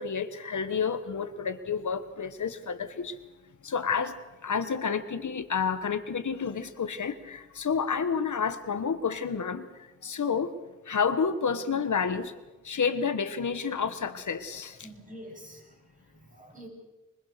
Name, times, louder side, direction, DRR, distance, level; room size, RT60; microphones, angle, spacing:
voice 1, 0.0-3.2 3.6-10.5 10.8-12.3 12.6-14.8, left 6 dB, 85° left, 10 dB, 1.3 m, -30 dB
voice 2, 14.5-16.7, equal, 25° right, 0 dB, 7.5 m, -48 dB
23.5 x 21.5 x 6.6 m, 1.1 s
wide cardioid pair, 90°, 29 cm